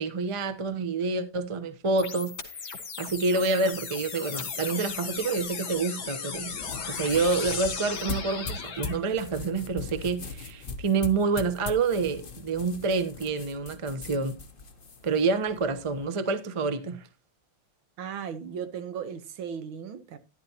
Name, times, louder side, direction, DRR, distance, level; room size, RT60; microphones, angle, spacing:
voice 1, 0.0-2.3 3.0-6.5 6.9-14.3 15.0-17.0, right 4 dB, 30° right, 0.5 m, -28 dB
sound 1, 2.0-9.0, left 6 dB, 70° left, 2.6 m, -36 dB
sound 2, 6.4-16.0, left 4 dB, 35° left, 1.0 m, -40 dB
voice 2, 18.0-20.2, right 7 dB, 80° right, 1.9 m, -36 dB
12.5 x 11.0 x 2.9 m
omnidirectional pair, 2.2 m